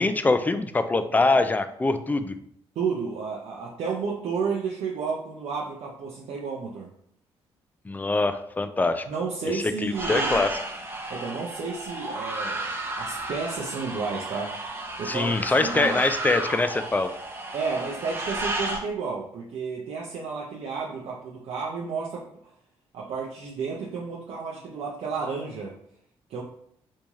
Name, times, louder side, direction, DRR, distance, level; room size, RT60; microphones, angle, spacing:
voice 1, 0.0-2.3 7.9-9.0 9.5-10.5 15.0-17.1, left 3 dB, 15° left, 10 dB, 0.3 m, -24 dB
voice 2, 2.8-6.9 9.1-10.5 11.1-12.7 13.0-16.0 17.5-22.3 22.9-25.7 26.3-26.4, right 5 dB, 75° right, -3 dB, 0.6 m, -32 dB
sound 1, 9.9-18.8, right 2 dB, 20° right, 0.8 m, -32 dB
3.0 x 2.7 x 3.5 m, 0.68 s
cardioid pair, 75°, 11 cm